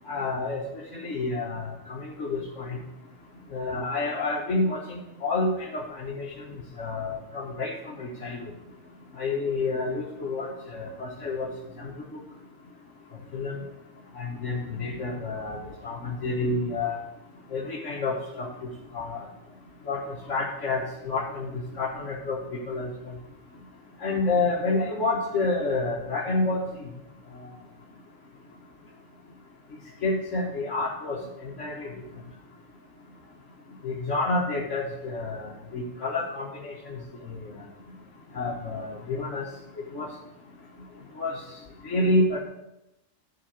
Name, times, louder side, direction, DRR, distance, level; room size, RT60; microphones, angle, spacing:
voice 1, 0.1-0.6 0.9-2.8 3.5-6.3 6.5-8.4 9.2-11.5 11.8-11.9 13.3-13.6 14.2-15.6 15.8-17.0 17.5-19.2 19.9-20.0 20.3-23.1 24.0-26.6 30.0-31.9 33.8-37.0 37.2-37.5 38.4-39.4 39.9-40.1 41.2-41.4 41.8-42.4, left 2 dB, 65° left, -4 dB, 1.8 m, -29 dB
11.0 x 4.1 x 7.0 m, 0.89 s
omnidirectional pair, 1.4 m